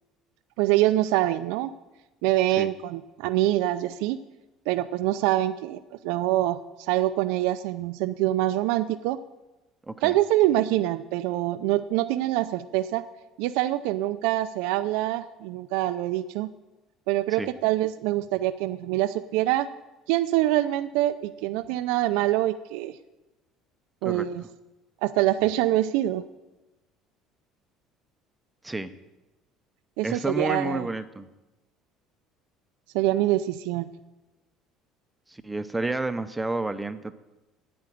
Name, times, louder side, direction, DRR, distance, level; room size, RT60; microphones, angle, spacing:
voice 1, 0.6-1.7 2.2-4.2 4.7-6.6 6.9-9.2 10.0-13.0 13.4-16.5 17.1-19.7 20.1-22.9 24.0-24.4 25.0-26.2 30.0-30.9 32.9-33.9, right 15 dB, 85° right, 11 dB, 0.5 m, -25 dB
voice 2, 9.8-10.2 17.3-17.5 24.0-24.3 28.6-28.9 30.0-31.3 35.3-37.1, right 2 dB, 10° right, 10 dB, 0.6 m, -30 dB
9.5 x 8.8 x 10.0 m, 1.1 s
cardioid pair, 155°, 0 cm